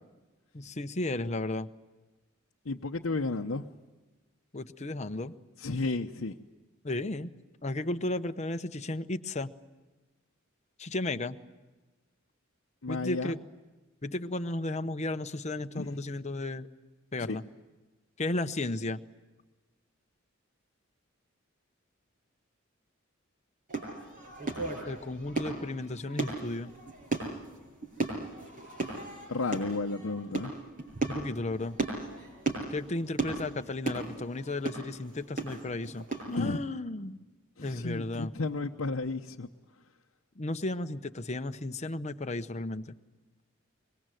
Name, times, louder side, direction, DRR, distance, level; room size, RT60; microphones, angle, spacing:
voice 1, 0.5-1.7 4.5-5.3 6.8-7.3 7.6-9.5 10.8-11.4 12.9-13.4 14.0-16.7 17.1-17.4 18.2-19.0 24.9-26.7 31.1-31.8 32.7-37.2 37.6-38.3 40.4-42.9, left 2 dB, 35° left, 8 dB, 0.9 m, -34 dB
voice 2, 2.6-3.7 5.6-6.4 12.8-13.4 15.7-16.0 17.3-17.4 29.3-30.5 36.4-36.6 37.6-39.5, left 3 dB, 75° left, 0 dB, 0.9 m, -32 dB
sound 1, 23.7-36.4, right 3 dB, 40° right, 7.2 m, -36 dB
25.0 x 22.0 x 9.1 m, 1.2 s
head